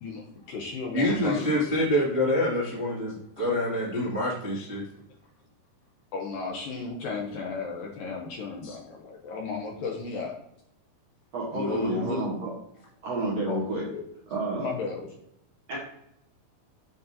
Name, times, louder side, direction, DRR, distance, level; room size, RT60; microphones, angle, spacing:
voice 1, 0.0-1.8 6.1-10.4 11.5-12.2 13.5-14.0 14.6-15.1, left 4 dB, 75° left, 0 dB, 2.1 m, -34 dB
voice 2, 0.9-4.8 8.6-8.7, left 1 dB, 30° right, -8 dB, 0.5 m, -26 dB
voice 3, 11.3-12.5 13.0-13.8 14.3-14.7 15.7-15.8, right 2 dB, 65° right, -5 dB, 1.7 m, -29 dB
7.9 x 5.2 x 2.7 m, 0.77 s
omnidirectional pair, 4.7 m